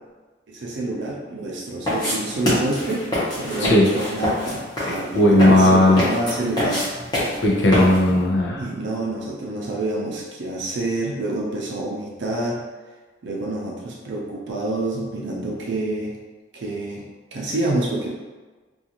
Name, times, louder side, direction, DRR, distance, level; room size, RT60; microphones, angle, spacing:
voice 1, 0.5-3.0 3.3-6.9 8.6-12.6 13.2-16.1 16.5-17.0 17.3-18.1, right 2 dB, 70° right, -3 dB, 0.5 m, -27 dB
sound 1, 1.9-8.2, left 1 dB, 25° left, 0.7 m, -25 dB
voice 2, 5.2-6.0 7.4-8.6, left 1 dB, 75° left, -2 dB, 0.6 m, -16 dB
2.5 x 2.3 x 2.8 m, 1.3 s
head